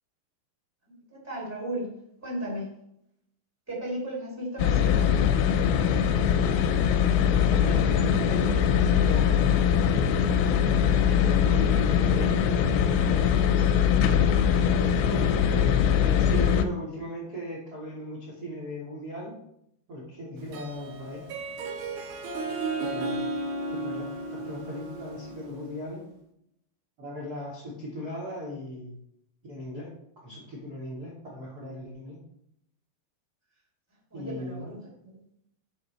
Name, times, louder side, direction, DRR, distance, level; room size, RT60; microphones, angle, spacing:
voice 1, 1.1-1.9 2.2-2.7 3.7-5.4 34.1-35.2, right 1 dB, 5° right, -4 dB, 2.5 m, -35 dB
sound 1, 4.6-16.7, left 8 dB, 85° left, 3.0 m, -22 dB
voice 2, 7.5-9.8 11.1-13.3 14.6-19.4 19.9-21.2 22.8-23.3 23.7-26.1 27.0-29.0 29.4-29.9 30.2-32.1 34.1-34.8, equal, 30° right, -6 dB, 1.8 m, -38 dB
Harp, 20.4-25.9, right 2 dB, 80° right, 2.2 m, -34 dB
8.7 x 7.1 x 4.3 m, 0.74 s
omnidirectional pair, 5.7 m